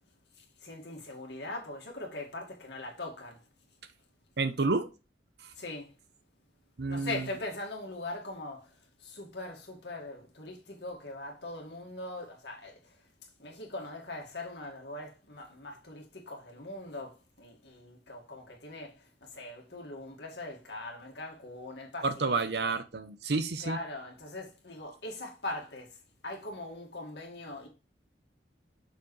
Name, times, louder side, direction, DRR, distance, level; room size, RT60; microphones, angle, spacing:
voice 1, 0.3-3.4 5.5-5.9 6.9-22.4 22.6-22.7 23.6-27.7, left 2 dB, 70° left, 1.9 m, -41 dB
voice 2, 4.4-4.9 6.8-7.3 22.0-23.8, right 3 dB, 65° right, 0.7 m, -30 dB
6.2 x 4.6 x 3.2 m
head